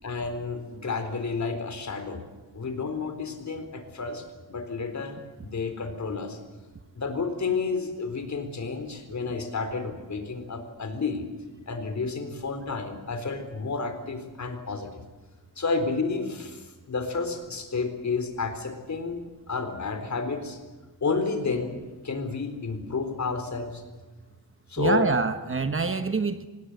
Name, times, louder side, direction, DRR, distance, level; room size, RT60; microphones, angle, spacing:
voice 1, 0.0-2.2 2.5-6.4 6.9-11.3 11.7-14.9 15.6-19.2 19.5-20.6 21.0-23.8 24.7-25.1, left 4 dB, 45° left, 7 dB, 4.1 m, -31 dB
voice 2, 24.8-26.5, right 4 dB, 35° right, 9 dB, 1.3 m, -25 dB
26.5 x 18.5 x 8.0 m, 1.2 s
wide cardioid pair, 135°, 39 cm